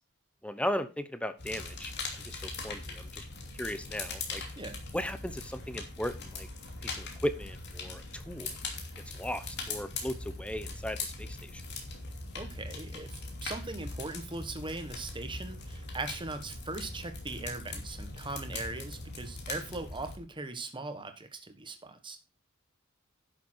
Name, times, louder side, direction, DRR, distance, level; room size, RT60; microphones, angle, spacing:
voice 1, 0.4-1.9 2.2-3.2 3.6-4.4 4.9-6.5 6.8-8.5 9.1-11.6, equal, 5° left, 11 dB, 0.9 m, -36 dB
sound 1, 1.4-20.2, left 3 dB, 55° left, 2.8 m, -41 dB
voice 2, 12.3-22.2, right 2 dB, 25° right, 8 dB, 1.5 m, -40 dB
11.0 x 6.9 x 4.6 m, 0.29 s
head